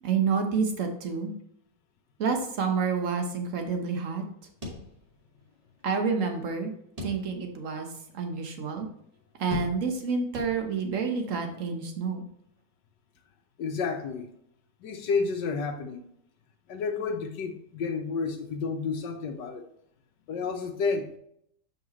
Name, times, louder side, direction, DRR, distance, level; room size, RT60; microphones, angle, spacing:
voice 1, 0.0-1.3 2.2-4.2 5.8-6.7 7.0-7.9 8.1-8.9 9.4-12.2, right 5 dB, 50° right, 4 dB, 1.4 m, -28 dB
sound 1, 4.6-5.5 5.8-5.9 7.0-7.6 8.1-8.2 9.5-10.1 10.3-11.0, left 2 dB, 20° right, 2.0 m, -39 dB
voice 2, 13.6-14.3 14.8-16.1 16.7-19.7 20.3-21.2, left 4 dB, 80° left, 5 dB, 1.5 m, -30 dB
7.6 x 5.7 x 3.1 m, 0.71 s
omnidirectional pair, 1.9 m